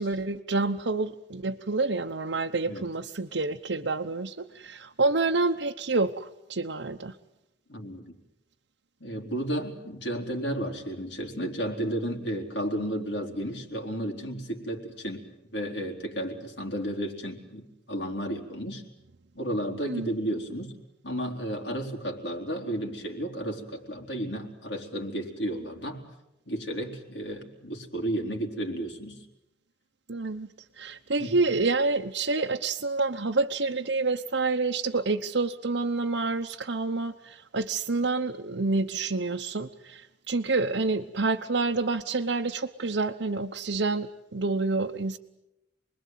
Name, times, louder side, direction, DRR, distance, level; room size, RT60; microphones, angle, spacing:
voice 1, 0.0-7.1 19.9-20.1 30.1-30.5 30.8-45.2, right 3 dB, 75° right, 2 dB, 1.0 m, -28 dB
voice 2, 7.7-8.2 9.0-15.2 15.5-18.8 19.3-20.7 21.0-26.0 26.5-29.2 31.2-31.3, right 1 dB, 70° left, 2 dB, 3.9 m, -33 dB
29.0 x 21.0 x 9.3 m, 0.92 s
head